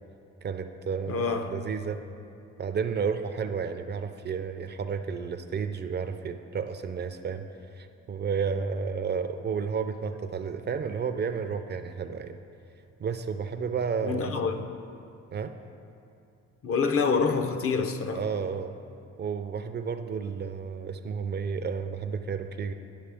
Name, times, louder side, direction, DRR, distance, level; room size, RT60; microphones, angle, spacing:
voice 1, 0.4-1.3 1.5-2.0 2.6-7.5 7.8-12.4 13.0-14.4 15.3-15.6 18.1-18.8 19.2-22.7, right 6 dB, 35° right, 0.4 m, -31 dB
voice 2, 1.1-1.5 14.0-14.7 16.6-18.2, left 5 dB, 50° left, 0.6 m, -26 dB
11.0 x 5.5 x 3.4 m
cardioid pair, 90°, 30 cm